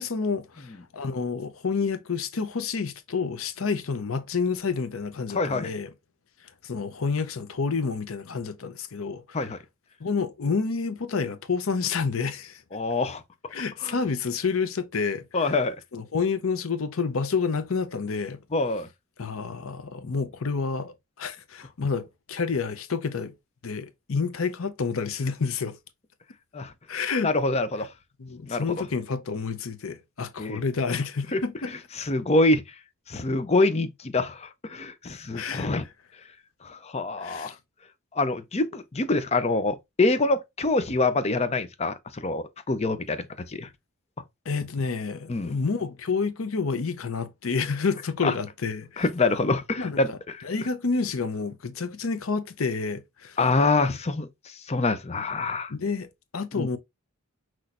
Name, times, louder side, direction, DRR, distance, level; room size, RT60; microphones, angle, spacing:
voice 1, 0.0-5.9 6.6-9.4 10.0-12.6 13.5-15.6 15.9-18.4 19.2-23.3 23.6-25.7 26.9-27.3 28.2-31.7 35.3-35.7 37.2-37.5 44.5-49.1 49.8-53.4 55.7-56.8, left 5 dB, 75° left, 0.7 m, -29 dB
voice 2, 5.3-5.7 9.3-9.6 12.7-13.2 13.8-13.9 15.3-15.8 18.5-18.9 26.5-26.7 27.2-27.9 28.5-28.6 30.4-30.6 31.3-31.4 32.0-32.6 33.1-35.8 36.6-37.5 38.1-43.2 43.5-43.7 45.3-45.5 48.2-48.3 49.0-50.1 53.4-54.3 54.7-55.7 56.6-56.7, left 2 dB, 30° left, 0.6 m, -25 dB
5.9 x 3.1 x 2.5 m
head